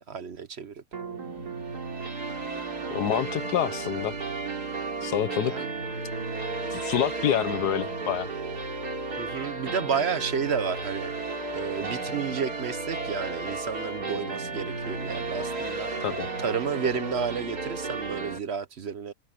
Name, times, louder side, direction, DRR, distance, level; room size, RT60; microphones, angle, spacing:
voice 1, 0.1-0.8 5.5-5.7 9.2-11.1 11.5-15.9 16.4-19.1, right 6 dB, 50° right, 0.9 m, -31 dB
sound 1, 0.9-18.4, right 3 dB, 75° right, 3.5 m, -33 dB
voice 2, 2.9-4.1 5.0-5.7 6.7-8.3 16.0-16.3, left 10 dB, 80° left, 1.6 m, -27 dB
omnidirectional pair, 1.7 m